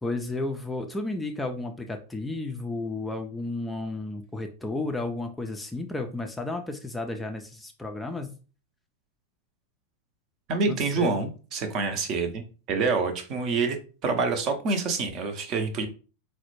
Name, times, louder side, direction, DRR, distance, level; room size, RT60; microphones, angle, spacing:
voice 1, 0.0-8.3 10.7-11.2, left 2 dB, 10° left, 4 dB, 0.4 m, -33 dB
voice 2, 10.5-12.4 12.7-13.8 14.0-15.9, right 4 dB, 35° right, 6 dB, 0.6 m, -26 dB
3.9 x 2.1 x 3.0 m, 0.36 s
figure-of-eight pair, 90°, 0 cm